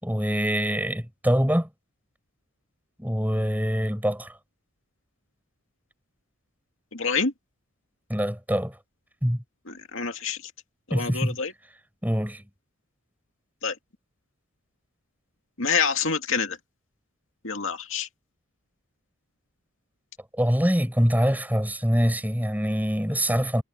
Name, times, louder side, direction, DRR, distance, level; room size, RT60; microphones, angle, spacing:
voice 1, 0.0-1.7 3.0-4.3 8.1-8.8 9.2-9.4 10.9-11.4 12.0-12.4 20.3-23.6, equal, 10° right, 6.6 m, -24 dB
voice 2, 6.9-7.3 9.7-10.5 10.9-11.5 13.6-13.8 15.6-16.6 17.4-18.1, left 5 dB, 65° left, 2.3 m, -27 dB
head